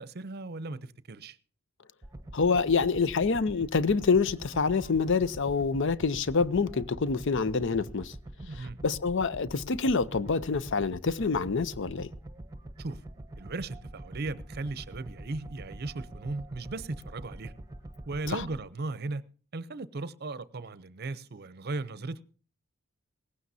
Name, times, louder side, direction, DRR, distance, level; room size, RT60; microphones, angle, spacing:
voice 1, 0.0-1.4 8.4-8.8 12.8-13.0 13.4-17.5 18.1-19.2 19.5-22.2, right 3 dB, 50° right, 0.7 m, -37 dB
sound 1, 2.0-18.7, right 1 dB, 15° right, 0.9 m, -44 dB
voice 2, 2.3-8.1 8.6-12.1 18.3-18.4, left 4 dB, 60° left, 0.6 m, -27 dB
18.0 x 15.5 x 2.7 m
head